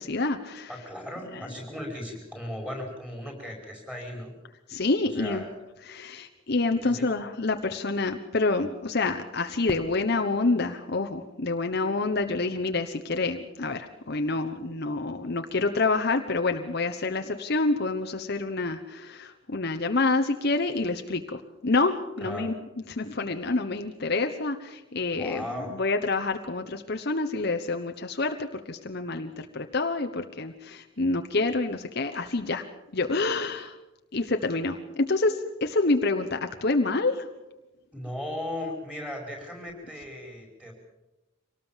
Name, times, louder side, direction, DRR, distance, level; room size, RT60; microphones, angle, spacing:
voice 1, 0.0-0.7 1.3-1.4 4.7-5.4 5.8-22.6 22.9-32.6 32.9-33.8 34.1-37.3, left 3 dB, 50° left, 6 dB, 1.1 m, -27 dB
voice 2, 0.7-4.3 5.1-5.5 6.8-7.1 22.2-22.5 25.2-25.8 37.9-40.7, left 1 dB, 5° right, 3 dB, 5.3 m, -37 dB
Fireworks, 9.7-12.5, equal, 20° right, 1.4 m, -46 dB
25.0 x 19.0 x 7.4 m, 0.98 s
head